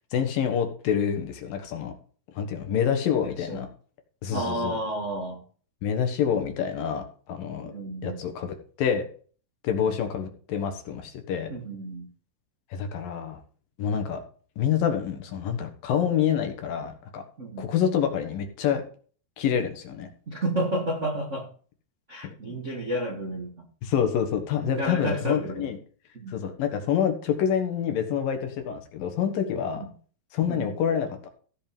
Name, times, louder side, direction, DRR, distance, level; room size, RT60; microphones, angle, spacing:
voice 1, 0.1-1.9 2.4-3.7 4.2-4.8 5.8-7.7 8.0-9.0 9.6-11.5 12.7-13.4 13.8-14.2 14.6-17.2 17.6-18.8 19.4-20.1 22.2-22.5 23.8-25.8 26.3-29.9 30.3-31.3, left 8 dB, 70° left, 6 dB, 3.1 m, -27 dB
voice 2, 3.2-3.6 4.3-5.4 7.6-8.2 9.8-10.0 11.5-12.1 17.4-17.7 20.3-21.5 22.1-23.7 24.7-25.7 26.1-26.3 28.1-28.2 29.7-29.9 30.5-30.8, right 1 dB, 45° right, -1 dB, 0.9 m, -31 dB
15.0 x 5.3 x 5.2 m, 0.42 s
omnidirectional pair, 4.3 m